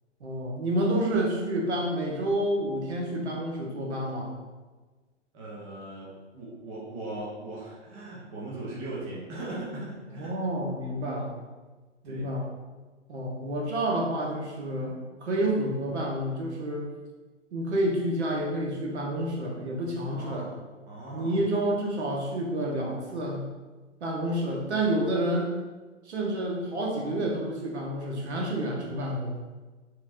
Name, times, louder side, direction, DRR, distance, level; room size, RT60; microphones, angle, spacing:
voice 1, 0.2-4.3 10.1-11.4 12.0-12.5 13.1-14.9 15.2-16.8 17.5-20.5 21.1-23.4 24.0-25.5 26.0-29.4, right 1 dB, 65° right, -2 dB, 1.0 m, -29 dB
voice 2, 5.3-10.3 12.0-12.3 20.1-20.6 20.9-21.4, right 2 dB, 15° right, -6 dB, 0.4 m, -39 dB
4.3 x 2.9 x 2.5 m, 1.3 s
figure-of-eight pair, 115°, 36 cm